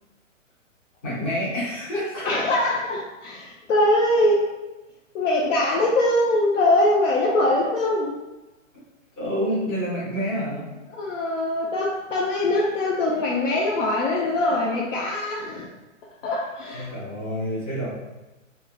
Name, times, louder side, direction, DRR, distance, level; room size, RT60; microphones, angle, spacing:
voice 1, 1.0-2.3 9.2-10.6 16.7-17.9, equal, 15° left, -10 dB, 0.5 m, -28 dB
voice 2, 2.2-4.5 5.1-8.1 10.9-15.7 16.2-16.9, left 1 dB, 70° left, -3 dB, 0.6 m, -22 dB
3.1 x 2.0 x 2.3 m, 1.1 s
hypercardioid pair, 155°, 39 cm